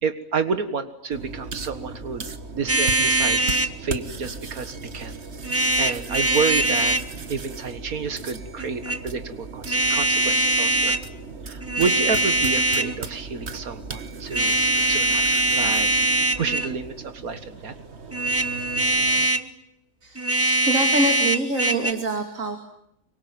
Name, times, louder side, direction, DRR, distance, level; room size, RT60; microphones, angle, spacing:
voice 1, 0.0-2.3 2.5-5.2 5.5-7.0 7.3-11.0 11.4-14.6 14.9-17.8, right 5 dB, 85° right, 10 dB, 2.1 m, -30 dB
sound 1, 1.1-19.3, right 4 dB, 50° right, 1.8 m, -37 dB
sound 2, 2.7-3.7 5.4-7.1 8.6-9.0 9.7-11.0 11.6-13.0 14.3-16.8 18.1-19.5 20.2-21.9, right 1 dB, 10° right, 1.0 m, -22 dB
voice 2, 20.7-22.6, right 2 dB, 65° right, 5 dB, 3.1 m, -25 dB
25.5 x 24.0 x 9.2 m, 0.74 s
omnidirectional pair, 1.5 m